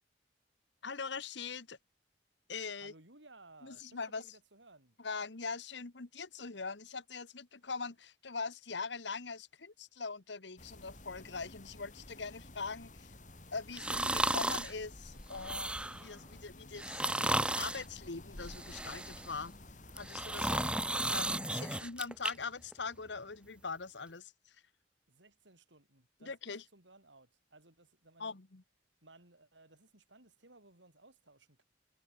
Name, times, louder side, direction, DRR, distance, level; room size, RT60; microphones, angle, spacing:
voice 1, 0.8-1.8 2.5-2.9 3.6-4.2 5.0-13.1 13.5-17.1 17.6-19.5 19.9-20.8 21.1-24.6 26.2-26.6 28.2-28.6, left 4 dB, 70° left, 1.3 m, -42 dB
voice 2, 2.8-5.0 25.1-28.4 29.0-31.6, right 2 dB, 80° right, 7.7 m, -60 dB
sound 1, 10.6-20.9, left 1 dB, 40° left, 3.6 m, -52 dB
sound 2, 13.7-14.7 15.3-16.1 16.8-17.8 18.4-19.4 19.9-22.3 22.7-22.8, right 1 dB, 5° right, 0.9 m, -34 dB
head